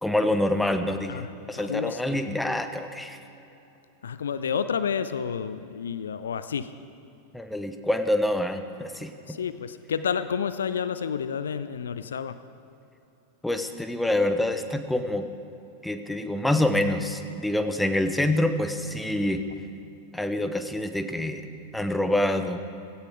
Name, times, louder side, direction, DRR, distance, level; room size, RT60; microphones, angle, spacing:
voice 1, 0.0-3.2 7.3-9.4 13.4-15.3 15.8-19.4 20.1-21.4 21.7-22.6, left 1 dB, 5° left, 8 dB, 0.9 m, -26 dB
voice 2, 1.6-2.2 4.0-6.7 9.3-12.4, left 7 dB, 65° left, 13 dB, 0.5 m, -30 dB
17.0 x 16.0 x 4.9 m, 2.9 s
figure-of-eight pair, 90°, 0 cm